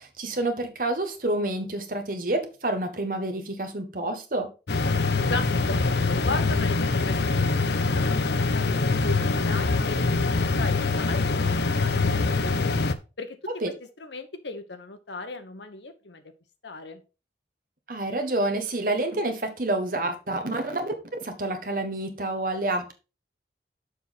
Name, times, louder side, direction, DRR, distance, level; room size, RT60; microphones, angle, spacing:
voice 1, 0.0-4.5 13.6-13.7 17.9-22.9, right 2 dB, 50° right, 1.4 m, -28 dB
sound 1, 4.7-12.9, left 3 dB, 70° left, 0.7 m, -24 dB
voice 2, 5.3-11.4 13.2-13.4 14.0-16.2 16.6-17.0, left 3 dB, 85° left, 1.2 m, -37 dB
6.9 x 5.9 x 4.1 m
head